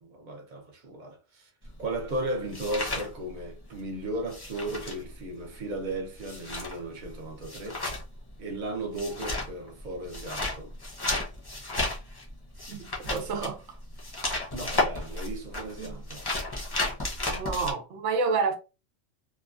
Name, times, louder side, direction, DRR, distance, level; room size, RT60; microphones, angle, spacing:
voice 1, 0.0-1.5 1.8-7.8 8.4-10.7 14.5-16.2, right 1 dB, 45° right, 0.7 m, -35 dB
sound 1, 1.6-3.8 4.1-17.7, left 2 dB, 25° left, 0.6 m, -33 dB
voice 2, 12.7-13.6 15.8-15.9 17.3-18.6, right 4 dB, 75° right, 0.9 m, -29 dB
2.9 x 2.2 x 2.4 m
omnidirectional pair, 1.2 m